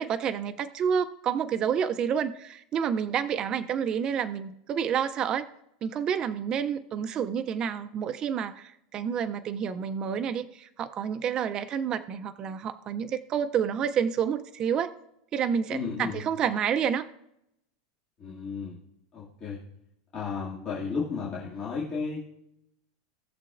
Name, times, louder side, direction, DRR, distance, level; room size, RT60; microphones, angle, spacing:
voice 1, 0.0-5.5 5.8-14.9 15.3-17.1, right 8 dB, 25° right, 10 dB, 0.3 m, -29 dB
voice 2, 15.7-16.2 18.2-18.8 19.1-19.6 20.1-22.2, left 5 dB, 20° left, -8 dB, 2.1 m, -33 dB
18.5 x 6.8 x 2.4 m, 0.80 s
supercardioid pair, 165°, 3 cm